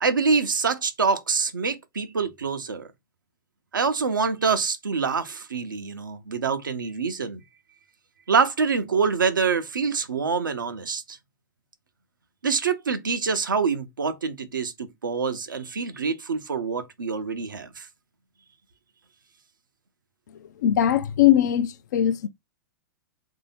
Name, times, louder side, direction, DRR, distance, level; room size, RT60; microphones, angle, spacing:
voice 1, 0.0-2.9 3.7-7.4 8.3-11.2 12.4-17.9, right 5 dB, 80° right, 0.6 m, -25 dB
voice 2, 20.6-22.3, left 11 dB, 60° left, 0.5 m, -20 dB
3.3 x 2.7 x 4.2 m
figure-of-eight pair, 100°, 11 cm